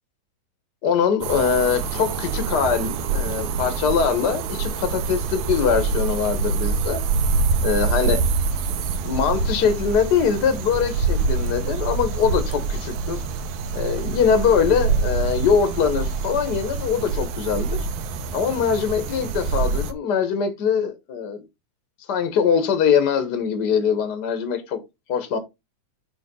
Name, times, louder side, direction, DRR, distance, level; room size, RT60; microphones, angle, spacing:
voice 1, 0.8-7.0 7.6-8.2 9.0-13.2 13.7-17.9 18.3-21.4 22.1-24.8 25.1-25.4, left 6 dB, 70° left, 1.0 m, -22 dB
sound 1, 1.2-19.9, right 4 dB, 70° right, 2.1 m, -25 dB
8.4 x 3.1 x 5.3 m
omnidirectional pair, 3.7 m